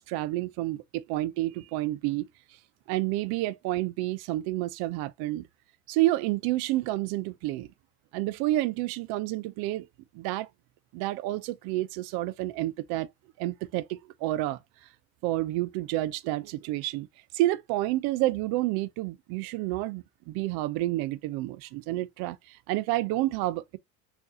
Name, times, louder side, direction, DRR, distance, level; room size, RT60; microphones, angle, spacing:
voice 1, 0.0-2.3 2.9-5.5 5.9-7.7 8.1-9.9 10.1-10.5 10.9-13.1 13.4-14.6 15.2-17.1 17.3-23.8, right 16 dB, 60° right, 0.5 m, -29 dB
3.7 x 2.6 x 2.6 m
hypercardioid pair, 80°, 42 cm